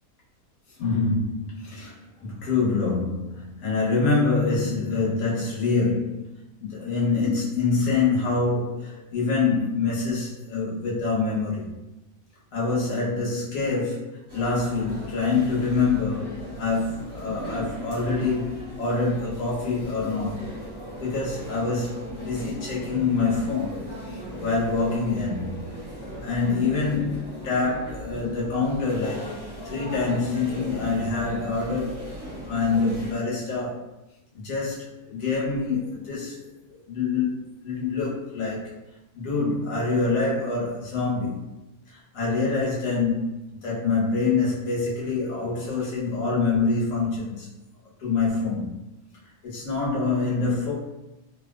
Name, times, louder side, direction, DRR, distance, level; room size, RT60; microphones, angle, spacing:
voice 1, 0.8-6.3 6.6-11.7 12.5-20.5 21.0-25.5 26.2-29.4 29.6-32.1 32.4-33.9 34.3-38.8 39.1-41.5 41.9-47.5 48.0-48.8 49.4-50.7, left 4 dB, 60° left, -5 dB, 1.2 m, -26 dB
sound 1, 14.3-33.1, equal, 15° right, 1.1 m, -38 dB
3.1 x 2.5 x 2.2 m, 0.96 s
omnidirectional pair, 1.7 m